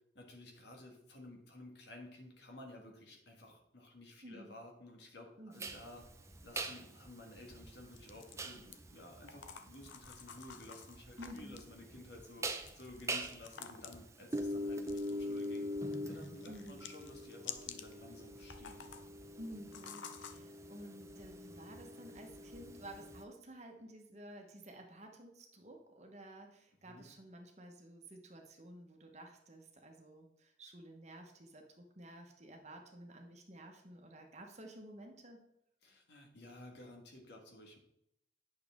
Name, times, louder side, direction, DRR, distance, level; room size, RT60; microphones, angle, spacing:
voice 1, 0.1-6.1 6.4-12.5 12.7-15.7 16.1-18.9 26.9-27.0 35.8-37.8, left 1 dB, 60° left, 1 dB, 1.6 m, -54 dB
voice 2, 4.2-4.6 5.4-5.8 11.2-11.7 16.5-16.9 19.4-35.4, right 1 dB, 35° right, 3 dB, 1.1 m, -52 dB
sound 1, 5.6-23.2, equal, 15° right, 0.5 m, -44 dB
sound 2, 7.9-8.8 9.3-11.7 12.5-14.1 14.8-15.6 15.9-17.9 18.4-19.1 19.7-20.4, left 8 dB, 80° left, 0.6 m, -50 dB
8.6 x 6.5 x 3.6 m, 0.79 s
head